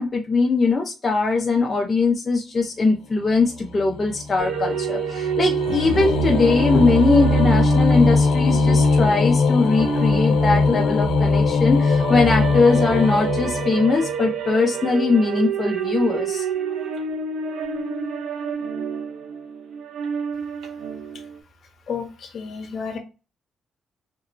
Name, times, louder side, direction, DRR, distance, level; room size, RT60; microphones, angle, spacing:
voice 1, 0.0-16.5, left 4 dB, 30° left, 1 dB, 0.6 m, -21 dB
sound 1, 3.4-14.3, left 3 dB, 80° left, 0.5 m, -21 dB
sound 2, 4.4-21.4, right 7 dB, 75° right, 0.7 m, -29 dB
voice 2, 21.9-23.0, left 6 dB, 55° left, 5 dB, 0.8 m, -31 dB
3.0 x 2.7 x 2.4 m, 0.31 s
cardioid pair, 90°, 0 cm